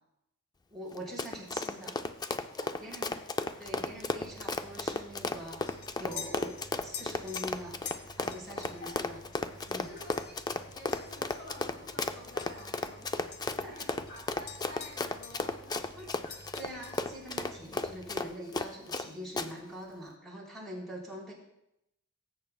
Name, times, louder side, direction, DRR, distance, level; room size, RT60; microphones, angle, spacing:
voice 1, 0.7-2.0 2.8-3.1 3.6-7.8 8.1-9.2 9.6-9.9 13.5-13.9 15.9-16.1 16.5-21.3, equal, ahead, -5 dB, 3.7 m, -43 dB
Run, 0.9-19.1 19.4-19.5, left 3 dB, 20° left, 0.4 m, -34 dB
voice 2, 2.5-3.3 8.5-9.0 9.8-10.4 10.7-13.1 13.6-15.9 16.2-16.4, left 1 dB, 45° left, -2 dB, 3.5 m, -50 dB
sound 1, 3.6-18.3, right 1 dB, 20° right, 1.1 m, -55 dB
sound 2, 4.4-13.0 13.3-15.5 15.7-17.2, left 8 dB, 85° left, 0.8 m, -48 dB
19.5 x 8.1 x 2.3 m, 0.84 s
head